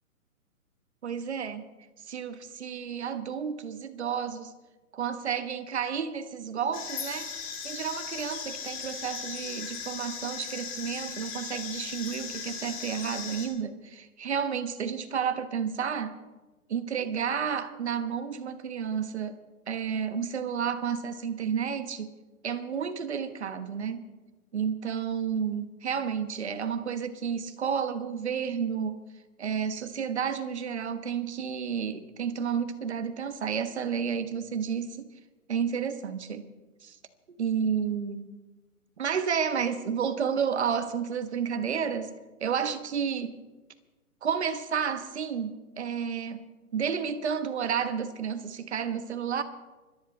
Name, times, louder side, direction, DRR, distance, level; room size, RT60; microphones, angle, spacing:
voice 1, 1.0-1.6 2.0-4.5 4.9-7.3 7.6-16.2 16.7-19.4 19.7-22.1 22.4-24.1 24.5-29.0 29.4-35.1 35.5-36.5 36.8-37.0 37.3-38.2 39.0-42.1 42.4-43.4 44.2-46.4 46.7-49.4, right 7 dB, 50° right, 1.3 m, -31 dB
sound 1, 6.7-13.5, left 6 dB, 25° left, 2.1 m, -38 dB
25.0 x 10.5 x 4.4 m
hypercardioid pair, 165°, 44 cm